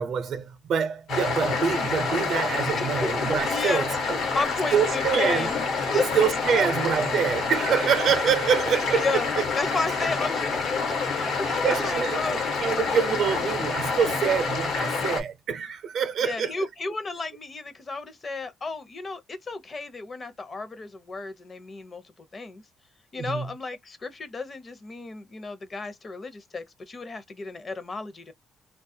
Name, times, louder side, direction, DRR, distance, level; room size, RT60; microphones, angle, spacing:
voice 1, 0.0-4.2 4.7-5.5 5.9-9.1 9.4-9.5 11.6-16.7 23.2-23.5, right 7 dB, 70° right, 0.6 m, -26 dB
sound 1, 1.1-15.2, left 4 dB, 80° left, 1.1 m, -27 dB
voice 2, 2.6-3.1 3.5-3.9 4.3-5.6 5.9-6.0 9.0-9.3 9.6-12.5 16.2-22.6 23.1-28.3, left 3 dB, 35° left, 0.6 m, -33 dB
2.3 x 2.1 x 2.6 m
cardioid pair, 90°, 0 cm